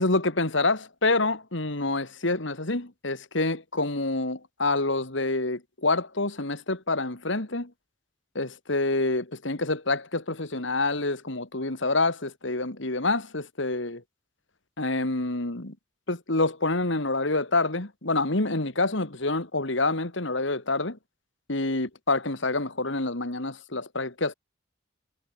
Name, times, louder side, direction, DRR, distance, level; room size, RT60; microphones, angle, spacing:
voice 1, 0.0-7.7 8.3-14.0 14.8-15.8 16.1-21.0 21.5-24.3, left 2 dB, 65° left, 2.6 m, -27 dB
head